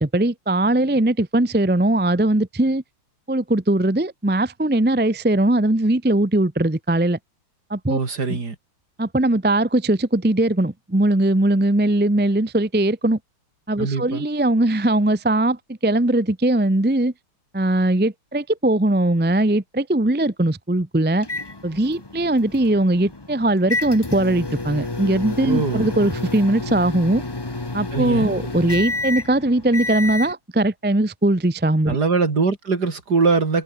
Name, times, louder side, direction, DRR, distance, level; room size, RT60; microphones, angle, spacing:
voice 1, 0.0-2.8 3.3-7.2 7.7-8.0 8.3-8.4 9.0-13.2 13.7-17.1 17.5-21.3 21.6-27.2 27.7-32.0, right 1 dB, 10° right, 0.8 m, -20 dB
voice 2, 7.9-8.6 13.8-14.3 25.5-25.9 27.9-28.3 31.9-33.6, right 4 dB, 55° right, 3.5 m, -22 dB
sound 1, 21.2-30.3, left 2 dB, 15° left, 1.2 m, -30 dB
open air
omnidirectional pair, 2.2 m